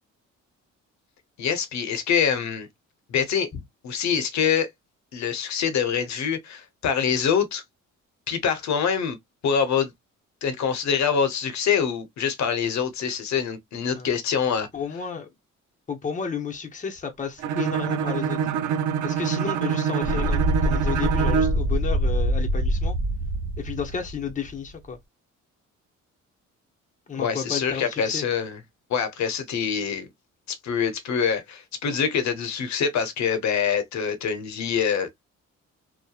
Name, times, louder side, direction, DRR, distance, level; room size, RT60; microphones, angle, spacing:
voice 1, 1.4-2.7 3.1-3.5 3.8-4.7 5.1-7.6 8.3-9.2 9.4-9.9 10.4-14.7 27.1-28.6 28.9-30.1 30.5-35.1, left 7 dB, 65° left, 0.8 m, -25 dB
voice 2, 14.7-15.3 15.9-18.4 19.0-22.9 23.6-25.0 27.1-28.2, left 6 dB, 25° left, 0.8 m, -32 dB
Bowed string instrument, 17.4-21.6, right 8 dB, 80° right, 0.5 m, -25 dB
sound 1, 20.0-24.7, equal, 55° right, 1.0 m, -25 dB
2.9 x 2.2 x 2.3 m
cardioid pair, 90°, 30 cm